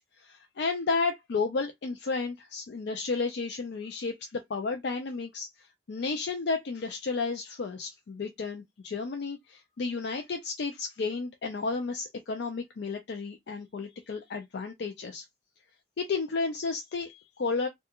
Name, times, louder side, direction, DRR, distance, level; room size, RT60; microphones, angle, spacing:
voice 1, 0.2-15.3 16.0-17.7, left 4 dB, 60° left, 0.4 m, -32 dB
2.3 x 2.3 x 2.8 m
head